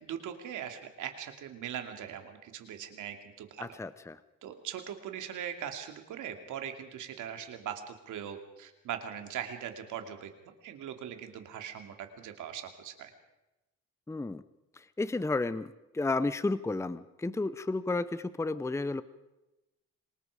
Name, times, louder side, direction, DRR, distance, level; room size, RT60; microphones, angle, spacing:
voice 1, 0.0-3.7 4.4-10.3 10.6-13.1, right 9 dB, 80° right, 6 dB, 2.6 m, -40 dB
voice 2, 3.6-4.2 14.1-14.4 14.7-19.0, left 3 dB, 10° left, 15 dB, 0.7 m, -32 dB
26.5 x 20.0 x 4.9 m, 0.99 s
cardioid pair, 90°, 30 cm